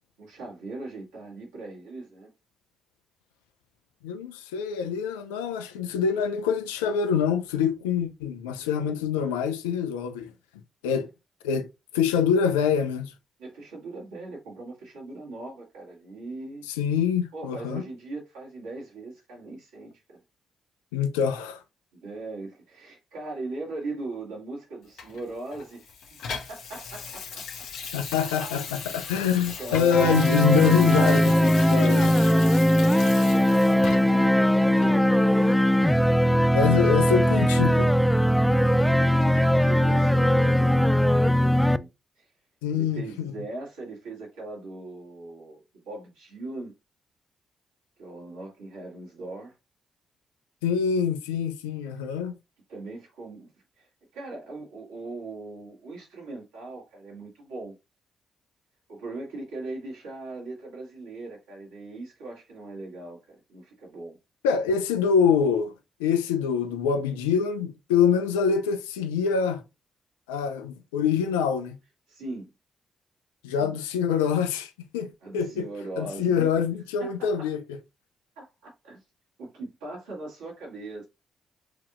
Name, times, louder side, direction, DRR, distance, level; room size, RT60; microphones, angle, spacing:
voice 1, 0.2-2.3 13.4-16.6 17.3-20.2 21.9-27.7 28.8-28.9 29.6-30.3 32.0-35.7 36.7-36.9 39.1-41.9 42.2-42.3 42.7-46.7 48.0-49.5 52.7-53.5 53.8-57.8 58.9-64.2 72.1-72.5 73.6-73.8 75.2-76.6 77.0-77.5 78.4-79.0 79.4-81.1, right 2 dB, 85° right, 2.0 m, -40 dB
voice 2, 4.0-10.3 10.8-11.1 11.4-11.7 11.9-13.1 16.8-17.8 20.9-21.6 27.9-32.1 36.5-37.9 42.6-43.3 50.6-52.4 64.4-65.7 66.0-69.6 70.3-71.8 73.4-75.7 76.0-77.6, left 7 dB, 90° left, 0.4 m, -25 dB
Water tap faucet / Sink (filling or washing), 25.0-34.3 34.8-34.9, left 6 dB, 75° left, 0.9 m, -38 dB
sound 1, 29.9-41.8, equal, 5° left, 0.3 m, -20 dB
5.8 x 2.9 x 2.4 m
hypercardioid pair, 40°, 0 cm